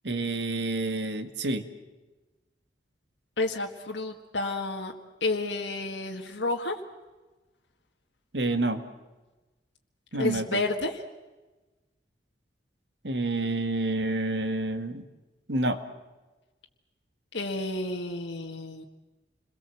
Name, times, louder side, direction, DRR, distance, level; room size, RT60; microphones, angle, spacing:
voice 1, 0.0-1.6 8.3-8.8 10.1-10.6 13.0-15.0 15.5-15.8, right 2 dB, 70° right, 8 dB, 1.9 m, -28 dB
voice 2, 3.4-4.9 5.2-6.8 10.2-11.0 17.3-18.8, left 2 dB, 80° left, 1 dB, 1.8 m, -30 dB
28.5 x 22.0 x 7.8 m, 1.2 s
head